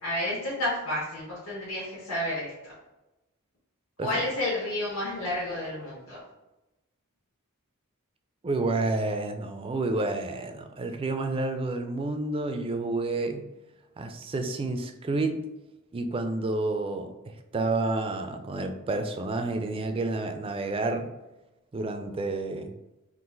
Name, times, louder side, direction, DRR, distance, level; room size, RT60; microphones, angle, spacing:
voice 1, 0.0-2.7 4.0-6.2, left 1 dB, 75° left, -8 dB, 1.3 m, -31 dB
voice 2, 8.4-13.4 14.0-15.4 15.9-17.1 17.5-21.1 21.7-22.7, right 2 dB, 25° right, 7 dB, 0.4 m, -29 dB
3.9 x 2.5 x 3.8 m, 0.99 s
head